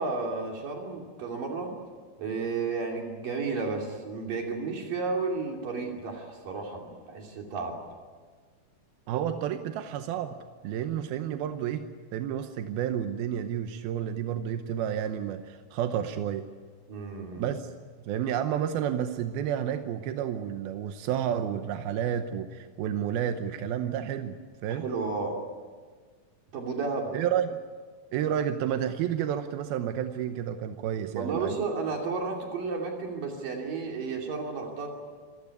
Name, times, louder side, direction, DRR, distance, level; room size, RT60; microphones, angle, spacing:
voice 1, 0.0-1.7 2.2-7.7 16.9-17.5 24.7-25.4 26.5-27.1 31.2-34.9, right 4 dB, 70° right, 1 dB, 4.4 m, -32 dB
voice 2, 9.1-10.4 10.6-11.9 12.1-16.5 17.4-17.7 18.0-24.9 27.1-27.6 28.1-31.5, right 9 dB, 90° right, 8 dB, 2.8 m, -30 dB
27.0 x 16.5 x 9.6 m, 1.5 s
omnidirectional pair, 4.2 m